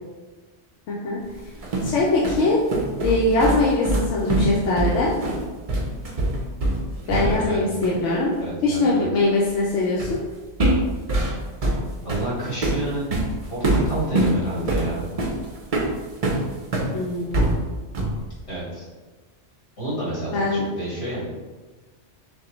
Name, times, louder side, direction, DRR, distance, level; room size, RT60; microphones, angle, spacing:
voice 1, 0.9-1.2 1.8-2.6 3.0-5.2 7.1-8.3 8.6-10.2 16.9-17.6 20.3-20.6, left 2 dB, 90° left, -4 dB, 1.0 m, -22 dB
sound 1, 1.4-7.6 7.8-8.1 10.0-10.2 10.6-16.9 17.3-18.3, right 1 dB, 45° right, 0.5 m, -24 dB
voice 2, 7.2-7.6 8.4-9.1 12.0-13.1 13.4-15.0 18.5-18.9 19.8-21.2, right 1 dB, 65° left, -7 dB, 2.0 m, -29 dB
6.3 x 2.2 x 3.1 m, 1.3 s
omnidirectional pair, 1.2 m